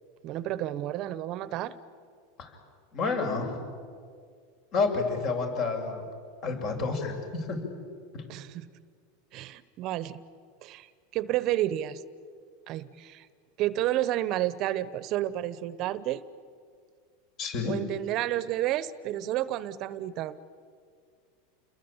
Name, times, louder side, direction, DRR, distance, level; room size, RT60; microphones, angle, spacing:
voice 1, 0.2-1.7 8.3-8.7 9.3-10.2 10.6-10.9 11.1-12.0 12.7-13.3 13.6-16.2 17.7-20.4, right 13 dB, 45° right, 16 dB, 1.0 m, -30 dB
voice 2, 2.9-3.6 4.7-6.0 6.4-7.6 8.1-8.2 17.4-17.7, left 4 dB, 45° left, 4 dB, 6.7 m, -29 dB
29.0 x 22.0 x 8.9 m, 2.1 s
supercardioid pair, 125°, 0 cm